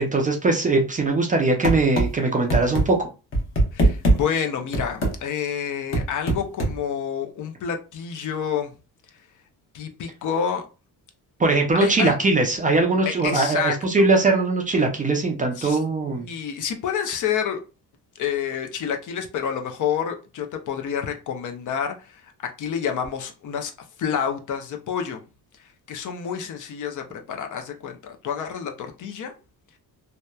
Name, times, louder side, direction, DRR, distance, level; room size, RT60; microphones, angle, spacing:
voice 1, 0.0-3.1 11.4-16.3, right 3 dB, 20° right, 2 dB, 0.4 m, -21 dB
sound 1, 1.6-2.1 2.5-2.8 3.3-4.2 4.7-5.1 5.9-6.7, right 1 dB, 35° left, 0.8 m, -19 dB
voice 2, 3.7-8.7 9.7-10.6 11.7-12.1 13.0-14.1 15.6-17.6 18.2-22.3 22.6-23.7 24.0-25.2 25.6-29.3, left 8 dB, 55° left, 4 dB, 0.5 m, -28 dB
2.8 x 2.1 x 2.2 m, 0.32 s
cardioid pair, 135°, 38 cm